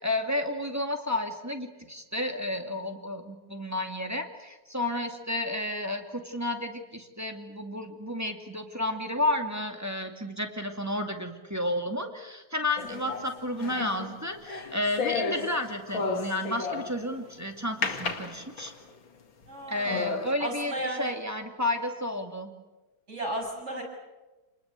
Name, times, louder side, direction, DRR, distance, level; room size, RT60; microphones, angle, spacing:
voice 1, 0.0-18.7 19.7-22.5, left 1 dB, 10° right, 3 dB, 2.1 m, -31 dB
sound 1, 12.8-17.2 17.8-18.9 19.4-19.5 19.9-20.3, left 4 dB, 70° left, 2.9 m, -33 dB
voice 2, 19.5-20.1 20.4-21.1 23.1-23.8, right 1 dB, 30° right, 1 dB, 6.9 m, -34 dB
28.5 x 20.5 x 8.3 m, 1.1 s
omnidirectional pair, 2.3 m